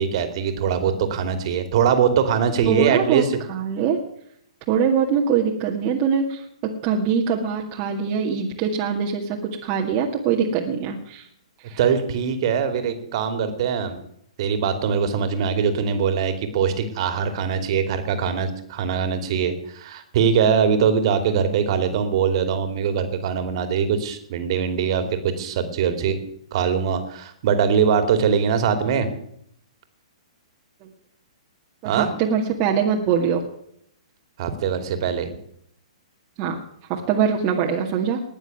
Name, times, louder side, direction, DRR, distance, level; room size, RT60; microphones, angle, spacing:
voice 1, 0.0-3.4 11.8-14.0 14.4-26.2 26.5-29.1 31.8-32.1 34.4-35.3, right 7 dB, 50° right, 8 dB, 2.7 m, -22 dB
voice 2, 2.7-4.0 4.7-6.4 6.8-9.4 9.6-11.3 11.6-11.8 30.8-30.9 31.8-33.4 36.4-36.6 36.9-38.2, right 7 dB, 35° right, -1 dB, 2.0 m, -23 dB
20.0 x 7.1 x 9.5 m, 0.71 s
hypercardioid pair, 130°, 4 cm